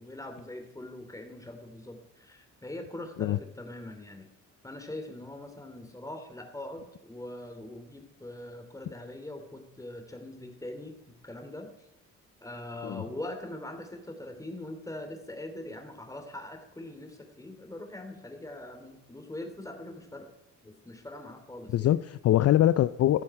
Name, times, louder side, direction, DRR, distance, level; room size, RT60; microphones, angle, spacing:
voice 1, 0.0-4.3 4.6-11.9 12.4-20.3 20.6-21.9, left 1 dB, 10° left, 5 dB, 3.1 m, -42 dB
voice 2, 21.7-23.2, left 12 dB, 55° left, 14 dB, 0.5 m, -23 dB
13.5 x 9.9 x 7.7 m, 0.87 s
cardioid pair, 90°, 30 cm